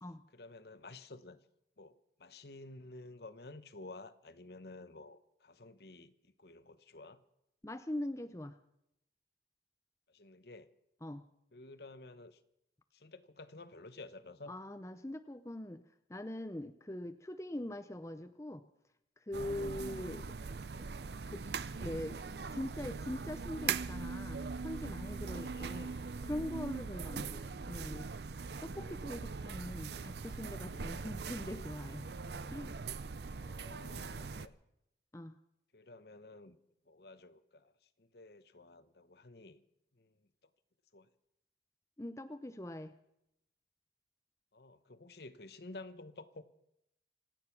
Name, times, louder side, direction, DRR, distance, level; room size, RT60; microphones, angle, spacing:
voice 1, 0.3-1.4 1.8-7.2 10.1-10.7 11.5-12.4 12.9-14.5 19.7-20.2 25.3-26.1 27.2-27.5 31.1-31.5 33.2-34.5 35.7-36.6 36.9-39.6 39.9-40.3 40.9-41.1 44.5-46.4, left 2 dB, 60° left, 12 dB, 1.0 m, -52 dB
voice 2, 7.6-8.6 11.0-11.3 14.5-15.8 16.1-18.6 19.2-20.2 21.3-22.2 22.5-28.1 28.3-32.1 32.5-32.7 35.1-35.4 42.0-42.9, left 1 dB, 15° left, 10 dB, 0.6 m, -42 dB
sound 1, 19.3-34.5, right 5 dB, 65° right, 0.6 m, -41 dB
26.5 x 9.0 x 5.9 m, 0.81 s
head